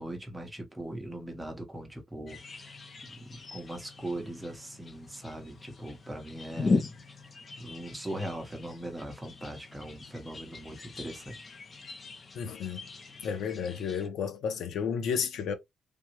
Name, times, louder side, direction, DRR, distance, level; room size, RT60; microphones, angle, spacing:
voice 1, 0.0-6.8 7.6-11.4, right 1 dB, 10° right, 0.8 m, -40 dB
sound 1, 2.3-14.1, left 3 dB, 30° left, 0.4 m, -38 dB
voice 2, 12.3-12.8 13.2-15.6, left 7 dB, 85° left, 0.6 m, -32 dB
3.4 x 2.0 x 2.8 m
wide cardioid pair, 155°, 0 cm